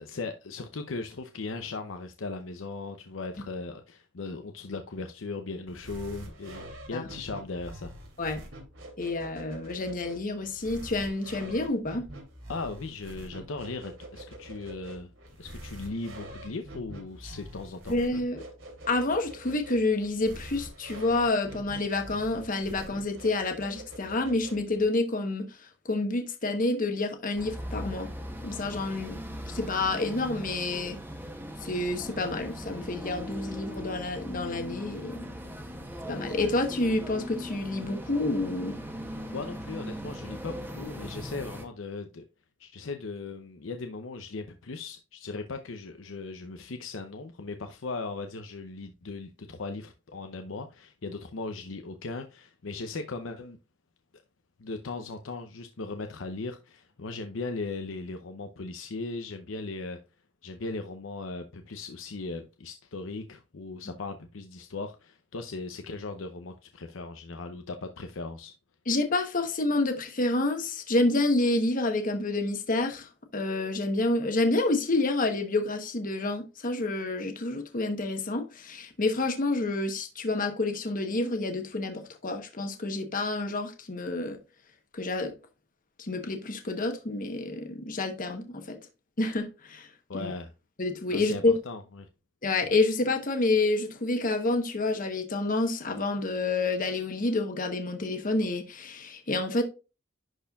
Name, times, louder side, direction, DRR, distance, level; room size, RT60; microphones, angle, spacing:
voice 1, 0.0-7.9 12.5-15.1 15.4-18.0 39.3-42.2 42.6-53.6 54.6-60.0 60.4-68.5 90.1-90.5 91.1-92.1, left 3 dB, 90° left, 0.7 m, -38 dB
sound 1, 5.7-24.9, right 1 dB, 85° right, 2.8 m, -45 dB
voice 2, 9.0-12.1 17.9-18.4 18.9-28.1 28.4-29.2 29.5-31.0 31.6-35.3 36.1-38.7 68.9-84.4 84.9-85.3 86.0-88.8 89.2-90.3 90.8-91.6 92.4-99.6, left 2 dB, 45° left, 1.0 m, -28 dB
sound 2, 27.4-41.7, equal, 10° right, 1.1 m, -39 dB
11.0 x 4.4 x 2.4 m
head